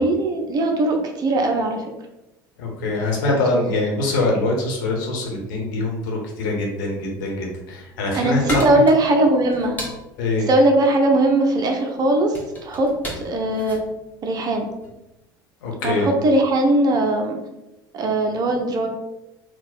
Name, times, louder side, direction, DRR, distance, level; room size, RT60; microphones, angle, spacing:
voice 1, 0.0-1.8 3.2-3.6 8.1-9.8 10.5-12.9 13.1-13.8 14.2-14.7 15.8-17.4 17.9-18.9, right 1 dB, 35° right, 3 dB, 0.7 m, -19 dB
voice 2, 2.6-8.8 10.2-10.5 15.6-16.1, left 2 dB, 60° left, 0 dB, 1.1 m, -23 dB
sound 1, 7.9-15.0, equal, 15° left, 1.3 m, -35 dB
3.9 x 2.3 x 4.2 m, 0.94 s
figure-of-eight pair, 65°, 11 cm